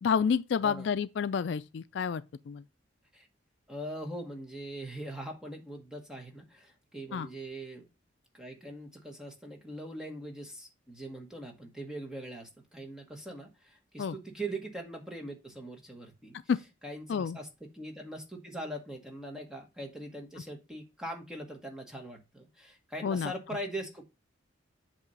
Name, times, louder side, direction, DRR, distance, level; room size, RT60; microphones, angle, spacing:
voice 1, 0.0-2.6 7.1-7.3 14.0-14.2 16.5-16.6 17.1-17.4 23.0-23.3, left 6 dB, 65° left, 0.3 m, -29 dB
voice 2, 0.6-0.9 3.1-3.3 3.7-7.9 8.3-16.4 16.8-24.0, right 1 dB, 5° right, 1.1 m, -41 dB
8.2 x 3.0 x 5.3 m
head